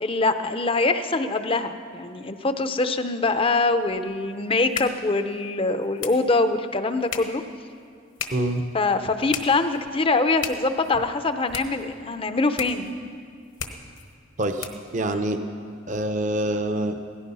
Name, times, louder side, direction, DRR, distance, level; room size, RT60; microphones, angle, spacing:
voice 1, 0.0-7.4 8.7-12.9 15.1-15.3, left 3 dB, 25° left, 9 dB, 0.6 m, -24 dB
sound 1, 3.4-15.0, left 7 dB, 65° left, 1.3 m, -39 dB
voice 2, 8.3-8.6 14.4-14.7 14.9-15.4 15.9-17.0, right 1 dB, 35° right, 7 dB, 0.7 m, -25 dB
17.5 x 14.5 x 5.5 m, 2.3 s
head